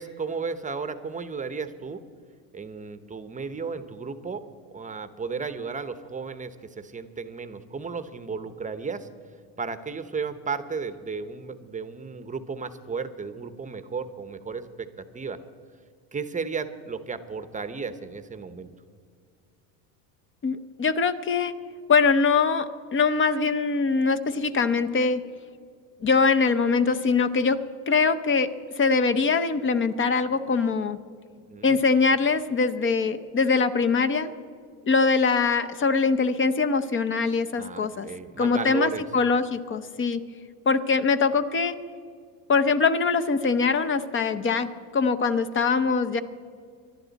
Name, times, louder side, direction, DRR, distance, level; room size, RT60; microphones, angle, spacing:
voice 1, 0.0-2.0 2.5-9.1 9.6-15.4 16.1-18.7 31.5-31.8 37.6-39.0, right 5 dB, 15° right, 11 dB, 0.8 m, -34 dB
voice 2, 20.4-21.5 21.9-25.2 26.0-28.5 28.8-31.0 31.6-34.3 34.9-38.1 38.4-40.2 40.7-41.8 42.5-46.2, left 4 dB, 25° left, 10 dB, 0.7 m, -23 dB
25.0 x 11.5 x 4.1 m, 2.1 s
supercardioid pair, 110°, 45 cm